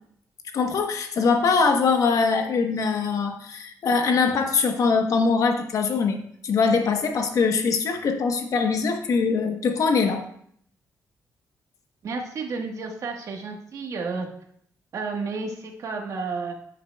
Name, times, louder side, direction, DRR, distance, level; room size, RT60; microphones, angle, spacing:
voice 1, 0.5-10.2, left 4 dB, 65° left, 5 dB, 1.0 m, -22 dB
voice 2, 12.0-14.3 14.9-16.5, right 4 dB, 60° right, 2 dB, 1.3 m, -31 dB
13.0 x 6.5 x 2.3 m, 0.67 s
cardioid pair, 135°, 6 cm